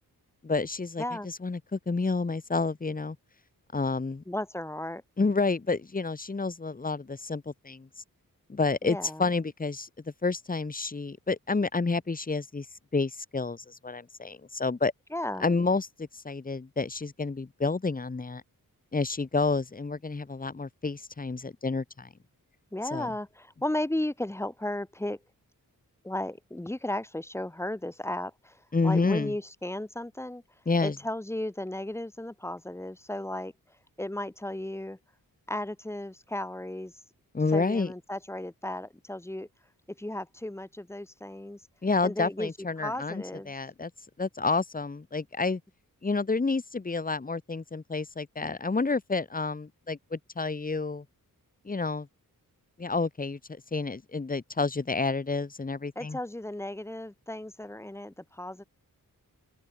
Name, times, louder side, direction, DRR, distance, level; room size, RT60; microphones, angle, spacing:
voice 1, 0.4-3.2 3.7-4.2 5.2-7.9 8.5-9.9 10.2-12.7 12.9-14.9 15.4-18.4 18.9-22.1 22.9-23.1 28.7-29.3 30.7-30.9 37.3-37.9 41.8-43.9 44.2-45.6 46.0-51.0 51.6-52.1 52.8-56.2, left 3 dB, 25° left, 1.4 m, -29 dB
voice 2, 4.3-5.0 8.8-9.3 15.1-15.5 22.7-25.2 26.0-30.4 30.8-33.5 34.0-35.0 35.5-36.9 37.5-39.5 39.9-41.6 42.0-42.5 42.8-43.5 56.0-58.6, left 1 dB, 10° left, 0.7 m, -35 dB
open air
wide cardioid pair, 175°, 35 cm